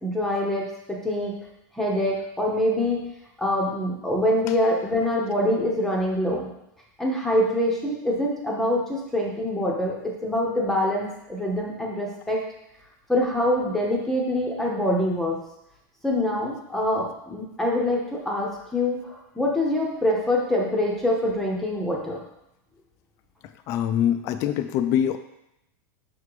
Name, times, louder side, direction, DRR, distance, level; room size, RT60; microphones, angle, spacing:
voice 1, 0.0-1.3 1.8-3.0 3.4-6.5 7.0-10.0 10.2-12.4 13.1-15.4 16.0-22.2, left 1 dB, 5° left, -2 dB, 0.7 m, -25 dB
voice 2, 23.7-25.2, left 10 dB, 30° left, 8 dB, 0.3 m, -23 dB
5.7 x 3.7 x 4.8 m, 0.85 s
supercardioid pair, 170°, 11 cm